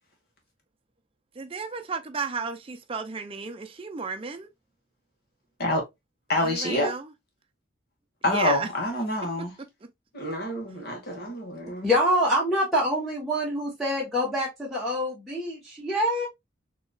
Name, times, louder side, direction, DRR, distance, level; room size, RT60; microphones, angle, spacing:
voice 1, 1.4-4.5 6.4-7.1 8.2-8.7 9.4-9.5, right 4 dB, 30° right, 0.5 m, -33 dB
voice 2, 6.3-6.9 8.2-9.5 10.1-11.9, left 1 dB, 50° left, 1.5 m, -27 dB
voice 3, 11.8-16.3, equal, ahead, 1.0 m, -25 dB
4.0 x 2.9 x 2.3 m
head